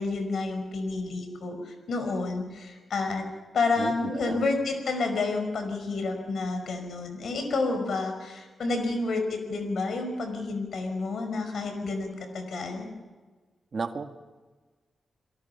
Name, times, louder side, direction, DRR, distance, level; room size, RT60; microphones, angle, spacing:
voice 1, 0.0-3.2 3.5-12.9, left 3 dB, 70° left, 6 dB, 5.3 m, -30 dB
voice 2, 3.8-4.5 7.7-7.8 13.7-14.3, right 4 dB, 40° right, 6 dB, 1.8 m, -34 dB
29.5 x 23.0 x 5.8 m, 1.3 s
wide cardioid pair, 145°, 0 cm